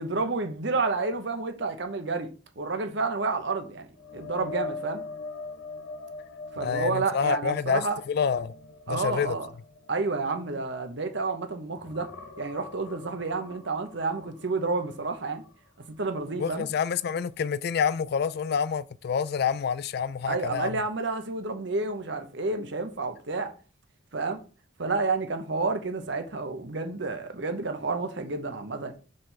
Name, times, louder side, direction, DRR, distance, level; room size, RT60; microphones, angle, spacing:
voice 1, 0.0-2.3 2.6-3.9 4.1-5.0 6.5-8.0 8.9-9.5 9.9-12.1 12.4-15.4 16.0-16.7 20.3-23.5 24.1-24.4 24.8-28.9, right 3 dB, 60° right, 1.0 m, -30 dB
sound 1, 4.0-11.4 11.7-15.6 16.0-16.2 19.5-19.6, left 4 dB, 80° left, 1.0 m, -42 dB
voice 2, 6.6-8.5 8.9-9.4 16.4-20.8, left 6 dB, 50° left, 0.3 m, -28 dB
5.4 x 3.4 x 5.6 m
head